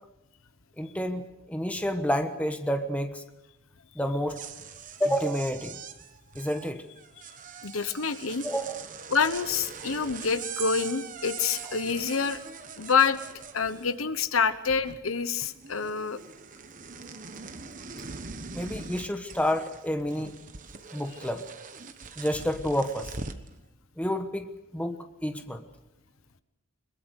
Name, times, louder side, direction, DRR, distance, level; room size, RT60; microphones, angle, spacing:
voice 1, 0.8-3.2 3.9-4.4 5.0-5.8 6.3-6.8 8.4-8.8 18.5-20.3 20.9-21.4 22.2-23.1 24.0-24.5 24.7-25.6, equal, 5° left, 7 dB, 1.2 m, -29 dB
sound 1, 4.1-14.2 14.4-15.2 15.4-23.5, right 5 dB, 40° right, 1.1 m, -42 dB
voice 2, 7.6-8.4 9.1-12.4 12.8-13.2 13.5-16.2, left 5 dB, 85° left, 12 dB, 1.1 m, -27 dB
22.0 x 21.5 x 6.5 m, 0.94 s
head